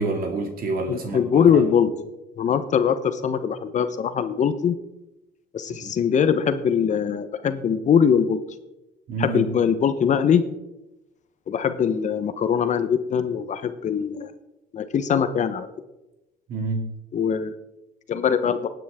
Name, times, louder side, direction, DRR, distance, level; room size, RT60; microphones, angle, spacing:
voice 1, 0.0-1.2 1.5-1.6 5.8-5.9 9.1-9.5 16.5-16.9, right 3 dB, 60° right, 4 dB, 2.3 m, -27 dB
voice 2, 0.9-1.9 2.4-4.7 5.5-8.4 9.2-10.4 11.5-14.3 14.7-15.7 17.1-17.5 18.1-18.7, left 7 dB, 45° left, 11 dB, 0.9 m, -22 dB
20.0 x 9.2 x 3.6 m, 0.97 s
cardioid pair, 110°, 17 cm